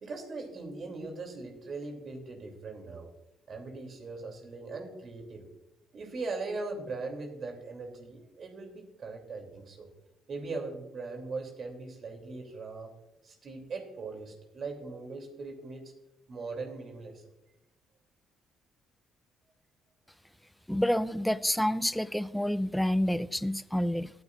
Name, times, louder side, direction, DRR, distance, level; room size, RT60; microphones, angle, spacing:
voice 1, 0.0-3.1 3.5-5.5 5.9-9.9 10.3-12.9 13.2-15.9 16.3-17.3, right 3 dB, 50° right, 3 dB, 3.0 m, -40 dB
voice 2, 20.7-24.1, equal, 5° left, 17 dB, 0.5 m, -28 dB
18.5 x 9.5 x 2.5 m, 0.91 s
hypercardioid pair, 55°, 0 cm